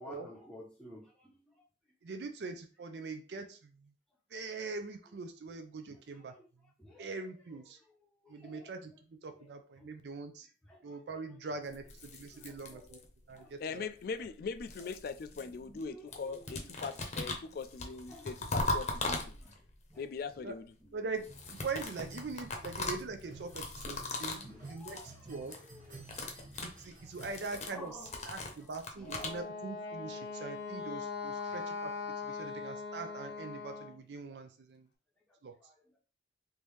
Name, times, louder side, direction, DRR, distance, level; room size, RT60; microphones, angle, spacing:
voice 1, 0.0-1.4 5.9-6.5 6.8-7.1 8.2-8.7 9.4-9.5 9.8-9.9 10.7-10.8 11.1-11.2 12.2-13.0 13.3-13.6 15.4-16.1 16.4-16.5 17.4-17.6 18.1-18.3 19.4-19.5 19.9-20.0 20.9-21.0 22.6-22.7 23.4-23.5 23.8-23.9 24.3-26.3 27.6-28.7 29.0-29.3 31.4-31.5 35.6-35.7, left 1 dB, 5° left, 0.7 m, -53 dB
voice 2, 2.0-3.6 4.3-6.3 7.0-7.8 8.3-8.9 9.2-10.5 10.8-13.0 13.3-13.8 20.4-20.5 20.9-24.4 24.7-25.0 25.3-25.6 26.6-28.0 28.3-31.9 32.3-34.8 35.4-35.5, right 4 dB, 65° right, 0.5 m, -42 dB
sound 1, 11.7-13.3 14.2-15.8 16.1-19.7 21.2-24.5 24.8-25.1 25.4-25.7 26.0-29.4, left 2 dB, 40° left, 0.7 m, -39 dB
voice 3, 13.6-19.4 20.0-20.7, left 5 dB, 55° left, 0.3 m, -40 dB
sound 2, 21.3-27.3, right 2 dB, 50° right, 1.2 m, -52 dB
Wind instrument woodwind instrument, 29.0-34.0, left 4 dB, 85° left, 0.8 m, -40 dB
3.4 x 2.7 x 3.1 m
head